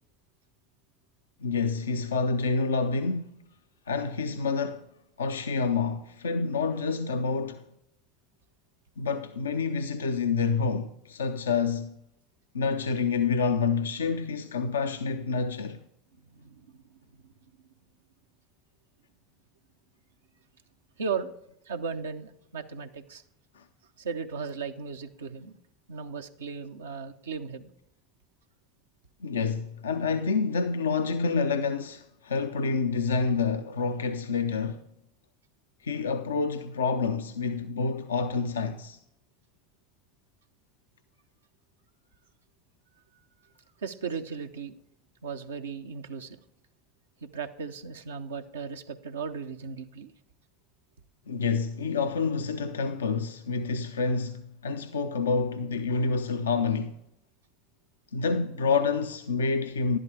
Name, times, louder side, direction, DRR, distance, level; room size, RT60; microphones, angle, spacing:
voice 1, 1.4-3.4 3.9-4.9 5.2-7.7 9.0-12.0 12.5-15.8 23.5-23.7 29.2-34.9 35.8-39.0 51.3-57.0 58.1-60.0, left 4 dB, 85° left, 0.5 m, -28 dB
voice 2, 21.0-21.3 21.7-23.2 24.0-25.6 25.9-27.7 43.8-44.8 45.2-46.4 47.3-50.1, right 5 dB, 85° right, 0.8 m, -36 dB
11.5 x 11.0 x 3.4 m
hypercardioid pair, 75°, 0 cm